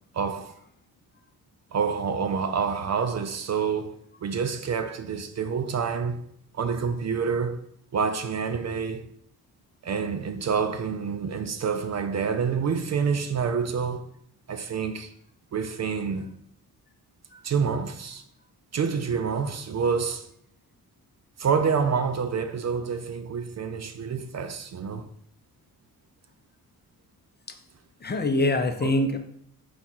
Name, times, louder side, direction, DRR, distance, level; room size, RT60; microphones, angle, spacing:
voice 1, 0.1-0.5 1.7-3.9 4.2-6.2 6.5-7.6 7.9-9.1 9.8-14.0 14.5-15.1 15.5-16.3 17.4-18.2 18.7-20.3 21.4-25.1 28.8-29.1, right 6 dB, 45° right, 0.5 m, -27 dB
voice 2, 28.0-29.2, left 2 dB, 25° left, 0.6 m, -24 dB
5.1 x 2.4 x 4.3 m
cardioid pair, 65°, 39 cm